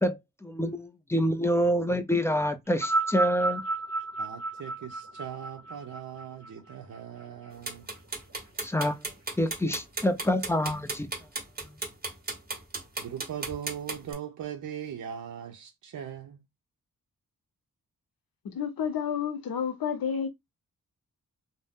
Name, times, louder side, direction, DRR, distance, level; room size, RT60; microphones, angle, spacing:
voice 1, 0.0-3.6 8.6-9.0 9.4-11.1, equal, 10° left, 0.3 m, -27 dB
sound 1, 2.7-7.2 8.1-8.2, right 2 dB, 45° right, 1.0 m, -31 dB
voice 2, 4.2-7.9 13.0-16.4, right 9 dB, 60° right, 0.6 m, -40 dB
sound 2, 7.6-14.1, right 3 dB, 25° right, 1.2 m, -34 dB
voice 3, 18.4-20.3, left 7 dB, 90° left, 0.7 m, -30 dB
2.6 x 2.0 x 3.5 m
wide cardioid pair, 110°, 34 cm